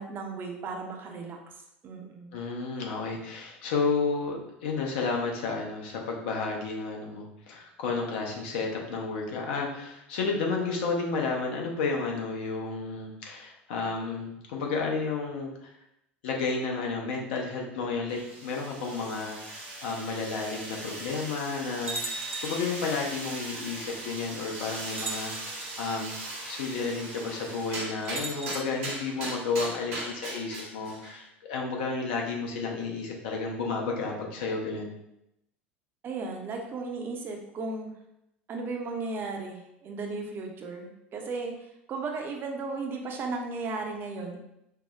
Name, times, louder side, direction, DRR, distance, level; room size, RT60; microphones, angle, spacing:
voice 1, 0.0-1.4 1.8-2.4 36.0-37.9 38.5-41.5 41.9-44.4, right 3 dB, 35° right, 2 dB, 0.5 m, -35 dB
voice 2, 2.3-15.7 16.2-34.9, left 4 dB, 60° left, 0 dB, 0.7 m, -32 dB
sound 1, 18.1-31.2, right 2 dB, 60° right, 0.9 m, -39 dB
sound 2, 21.1-21.2 21.9-22.7 23.9-24.0 24.9-25.7 28.0-29.0, right 2 dB, 85° right, 0.4 m, -37 dB
4.5 x 2.0 x 2.4 m, 0.83 s
figure-of-eight pair, 75°, 7 cm